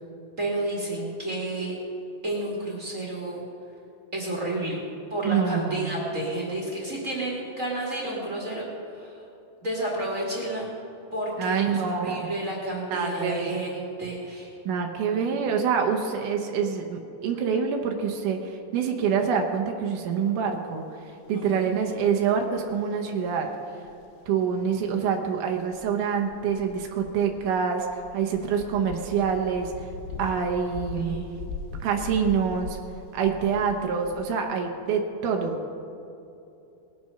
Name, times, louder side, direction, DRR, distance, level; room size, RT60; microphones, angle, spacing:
voice 1, 0.4-1.7 2.2-3.4 4.1-4.8 5.1-8.6 8.9-9.2 9.6-10.7 11.1-14.5 21.3-21.8 30.9-31.3, right 1 dB, 30° right, -4 dB, 1.6 m, -31 dB
voice 2, 5.2-6.0 11.4-12.3 12.9-13.6 14.6-23.5 24.3-29.9 30.2-31.2 31.8-32.8 33.1-35.7, right 6 dB, 80° right, 3 dB, 1.8 m, -26 dB
sound 1, 22.0-22.7 23.9-24.1 24.9-25.1 25.7-34.2, left 4 dB, 90° left, 2.9 m, -40 dB
20.0 x 7.6 x 5.7 m, 2.8 s
omnidirectional pair, 4.9 m